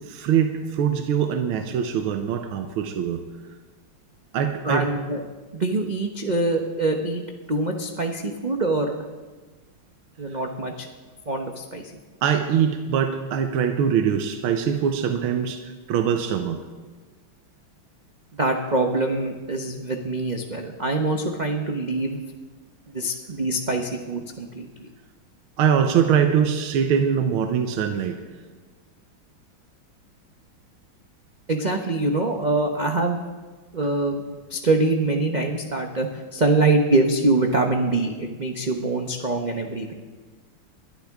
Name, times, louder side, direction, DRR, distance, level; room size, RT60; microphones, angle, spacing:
voice 1, 0.1-3.2 4.3-4.9 6.3-6.4 12.2-16.6 25.6-28.2, right 8 dB, 85° right, 7 dB, 1.7 m, -23 dB
voice 2, 4.6-5.2 5.5-7.2 7.5-9.1 10.2-10.9 11.3-11.9 18.3-22.2 22.9-24.9 31.5-33.2 33.7-34.2 34.5-39.9, right 2 dB, 45° right, 3 dB, 0.5 m, -24 dB
21.5 x 12.5 x 3.6 m, 1.3 s
omnidirectional pair, 2.3 m